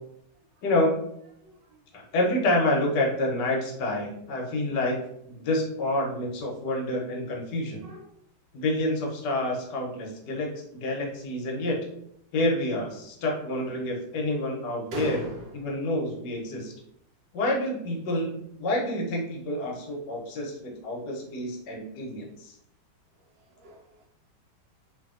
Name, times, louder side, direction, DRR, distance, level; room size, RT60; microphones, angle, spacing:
voice 1, 0.6-1.0 1.9-5.0 5.3-7.8 8.5-10.5 10.8-11.8 12.3-15.2 15.6-16.7 17.3-18.3 18.6-22.6, left 1 dB, 70° left, -1 dB, 1.2 m, -28 dB
voice 2, 1.4-1.8 7.8-8.2 14.9-15.9 23.2-24.1, equal, 75° right, -1 dB, 1.1 m, -39 dB
2.9 x 2.6 x 2.4 m, 0.74 s
omnidirectional pair, 2.2 m